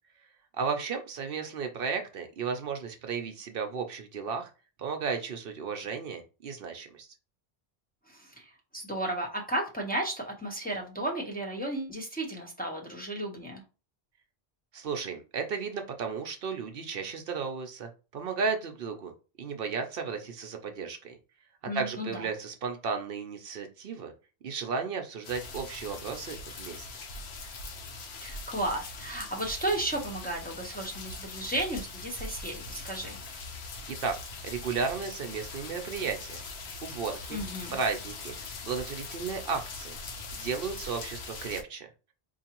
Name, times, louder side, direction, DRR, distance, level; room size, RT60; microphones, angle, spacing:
voice 1, 0.6-4.5 4.8-7.1 14.7-19.1 19.4-21.2 21.7-24.1 24.4-26.9 33.9-34.2 34.4-36.4 36.8-37.4 37.7-38.3 38.6-40.0 40.3-41.9, right 5 dB, 65° right, 5 dB, 0.8 m, -34 dB
voice 2, 8.1-13.6 21.7-22.3 28.2-33.2 37.3-37.8, right 1 dB, 10° left, -1 dB, 0.8 m, -34 dB
sound 1, 25.2-41.6, left 3 dB, 85° left, 1.0 m, -41 dB
4.7 x 2.6 x 2.9 m, 0.32 s
omnidirectional pair, 1.0 m